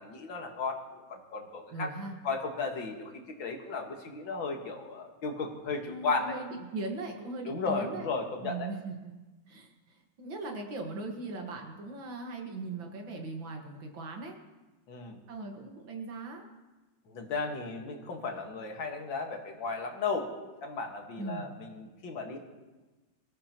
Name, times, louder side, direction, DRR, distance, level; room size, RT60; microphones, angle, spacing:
voice 1, 0.0-1.9 2.2-3.1 3.4-6.4 7.4-8.7 14.9-15.2 17.1-20.3 20.6-22.4, left 4 dB, 85° left, 2 dB, 2.4 m, -35 dB
voice 2, 1.7-2.2 5.7-8.1 8.4-9.1 9.5-14.4 15.3-16.4 21.2-21.5, right 3 dB, 85° right, 2 dB, 2.5 m, -39 dB
23.5 x 14.0 x 3.0 m, 1.2 s
omnidirectional pair, 2.1 m